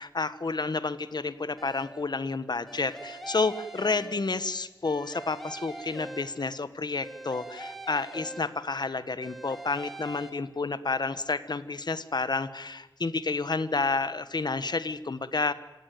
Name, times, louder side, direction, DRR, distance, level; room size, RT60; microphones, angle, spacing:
voice 1, 0.0-15.5, left 3 dB, 65° left, 13 dB, 1.3 m, -30 dB
sound 1, 1.6-2.1 2.7-4.5 4.8-6.6 7.0-8.8 9.2-10.3, right 1 dB, ahead, 4.8 m, -43 dB
27.0 x 16.5 x 9.3 m, 1.1 s
wide cardioid pair, 65°, 8 cm